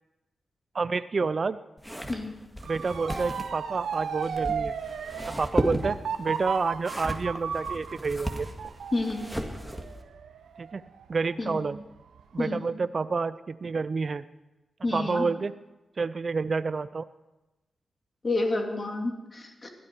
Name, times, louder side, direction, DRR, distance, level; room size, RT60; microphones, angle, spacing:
voice 1, 0.7-1.6 2.6-4.8 5.3-8.5 10.6-10.8 11.1-11.8 12.3-14.2 14.9-15.5 16.0-17.0, right 4 dB, 50° right, 14 dB, 0.5 m, -29 dB
sound 1, 1.8-10.0, equal, 5° left, 2.0 m, -35 dB
Motor vehicle (road) / Siren, 2.6-11.5 12.0-12.4, right 7 dB, 90° right, 0.9 m, -35 dB
Harp, 3.1-4.9, right 2 dB, 15° right, 4.0 m, -45 dB
voice 2, 8.9-9.3 11.4-11.6 12.4-12.6 14.8-15.3 18.2-19.7, left 2 dB, 40° left, 3 dB, 2.6 m, -29 dB
20.5 x 13.0 x 4.6 m, 1.0 s
cardioid pair, 65°, 0 cm